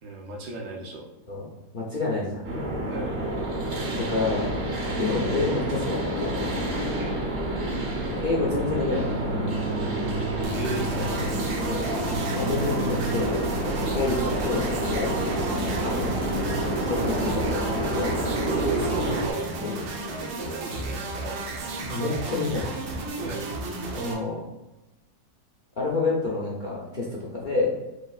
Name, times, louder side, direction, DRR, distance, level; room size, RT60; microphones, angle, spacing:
voice 1, 0.0-1.1 2.9-3.2 6.9-7.2 10.5-11.4 13.8-14.0 18.5-19.5 20.4-21.4 23.2-23.5, right 3 dB, 70° right, 0 dB, 1.2 m, -35 dB
voice 2, 1.7-2.5 4.0-4.5 5.0-6.5 8.2-9.4 11.7-11.9 12.3-15.2 15.8-16.1 16.8-18.2 19.6-19.7 21.9-22.7 23.9-24.4 25.8-27.7, left 3 dB, 70° left, -4 dB, 0.4 m, -28 dB
sound 1, 2.4-19.3, right 1 dB, 50° right, 0.9 m, -28 dB
sound 2, 10.4-24.1, right 2 dB, 85° right, 1.3 m, -33 dB
6.1 x 2.7 x 2.4 m, 1.0 s
omnidirectional pair, 1.7 m